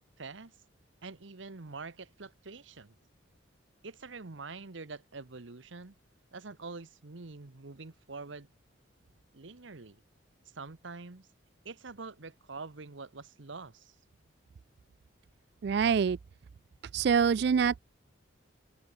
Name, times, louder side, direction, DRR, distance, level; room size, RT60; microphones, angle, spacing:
voice 1, 0.2-0.5 1.0-2.9 3.8-6.0 6.3-8.5 9.3-10.0 10.5-11.3 11.6-13.9, right 4 dB, 75° right, 1.1 m, -45 dB
voice 2, 15.6-16.2 16.9-17.8, right 6 dB, 55° right, 0.3 m, -25 dB
head